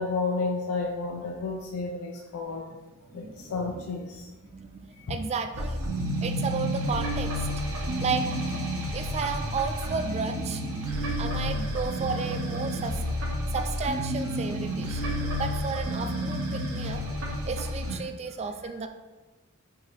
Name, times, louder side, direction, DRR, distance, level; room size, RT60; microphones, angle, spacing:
voice 1, 0.0-2.7 3.1-4.3 5.0-5.2 7.7-7.8, left 3 dB, 90° left, 0 dB, 0.5 m, -31 dB
voice 2, 3.1-3.9 4.4-5.8 6.2-7.5 8.0-8.3 8.9-10.6 11.2-13.0 13.5-15.0 15.4-17.0 17.5-18.9, right 5 dB, 30° right, 7 dB, 0.3 m, -33 dB
sound 1, 5.5-18.0, equal, 70° right, 0.9 m, -30 dB
6.1 x 2.8 x 3.0 m, 1.2 s
head